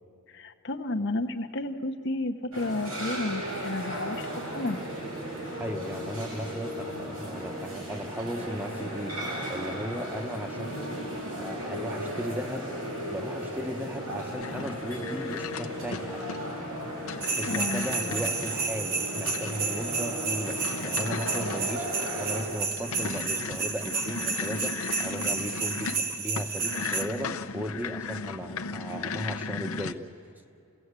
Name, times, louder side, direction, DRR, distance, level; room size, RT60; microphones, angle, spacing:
voice 1, 0.3-4.3 4.5-4.8 17.4-17.9, left 2 dB, 55° left, 5 dB, 0.9 m, -31 dB
sound 1, 2.5-22.4, equal, 85° right, 6.4 m, -36 dB
voice 2, 5.6-10.8 11.4-12.6 13.1-16.2 17.4-30.0, equal, 10° right, 6 dB, 1.0 m, -36 dB
sound 2, 14.4-29.9, left 4 dB, 80° left, 0.8 m, -37 dB
sound 3, 17.2-27.0, right 5 dB, 45° right, 1.4 m, -32 dB
28.5 x 17.5 x 8.2 m, 2.7 s
head